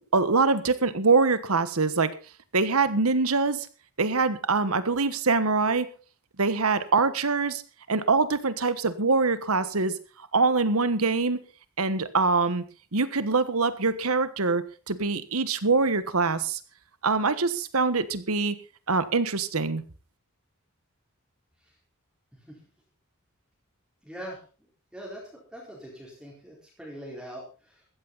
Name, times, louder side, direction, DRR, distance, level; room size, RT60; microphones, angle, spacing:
voice 1, 0.1-2.1 2.5-3.7 4.0-5.9 6.4-7.6 7.9-10.0 10.3-11.4 11.8-12.6 12.9-16.6 17.0-18.5 18.9-19.8, right 4 dB, 85° right, 13 dB, 1.4 m, -24 dB
voice 2, 24.0-24.4 24.9-27.9, equal, 5° right, -5 dB, 4.4 m, -42 dB
15.0 x 14.0 x 4.1 m, 0.36 s
head